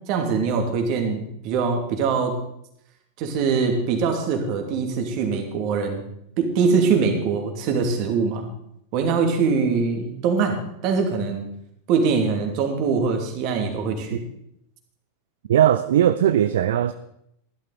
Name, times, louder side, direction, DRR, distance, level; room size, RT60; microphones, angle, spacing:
voice 1, 0.1-2.4 3.2-6.0 6.4-8.5 8.9-10.6 10.8-11.4 11.9-14.2, right 5 dB, 45° right, 4 dB, 2.6 m, -23 dB
voice 2, 15.5-16.9, right 11 dB, 60° right, 12 dB, 0.5 m, -19 dB
15.5 x 11.5 x 4.1 m, 0.75 s
figure-of-eight pair, 90°, 0 cm